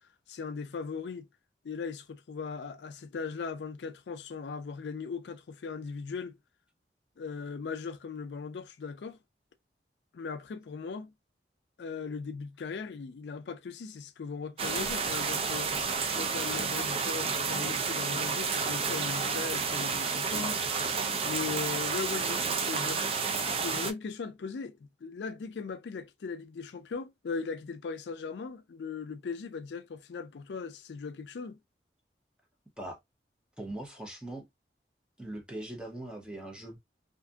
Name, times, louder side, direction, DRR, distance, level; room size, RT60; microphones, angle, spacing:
voice 1, 0.3-1.3 1.6-6.4 7.2-9.2 10.1-11.1 11.8-15.7 16.1-20.6 21.2-31.6, left 5 dB, 80° left, 0.4 m, -38 dB
sound 1, 14.6-23.9, right 5 dB, 35° right, 0.4 m, -30 dB
voice 2, 33.6-34.5 35.2-36.8, right 1 dB, 5° right, 0.7 m, -40 dB
2.6 x 2.5 x 2.2 m
head